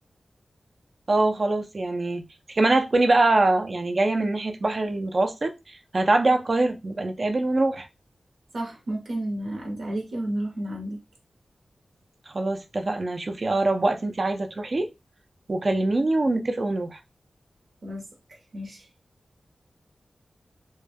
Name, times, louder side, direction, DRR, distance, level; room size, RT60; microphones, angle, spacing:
voice 1, 1.1-2.2 2.5-7.9 12.3-14.9 15.5-17.0, right 2 dB, 45° right, 0.4 m, -23 dB
voice 2, 8.5-11.0 17.8-18.0 18.3-18.9, right 1 dB, 80° right, 0.8 m, -31 dB
2.3 x 2.1 x 3.3 m
wide cardioid pair, 100°, 0 cm